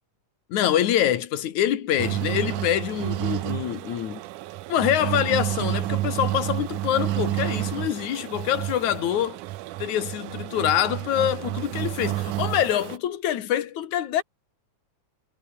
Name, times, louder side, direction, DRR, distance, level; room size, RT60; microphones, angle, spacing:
voice 1, 0.5-4.2 4.7-9.4 9.8-14.2, left 11 dB, 65° left, 3.1 m, -25 dB
sound 1, 2.0-13.0, right 17 dB, 80° right, 2.2 m, -30 dB
omnidirectional pair, 3.7 m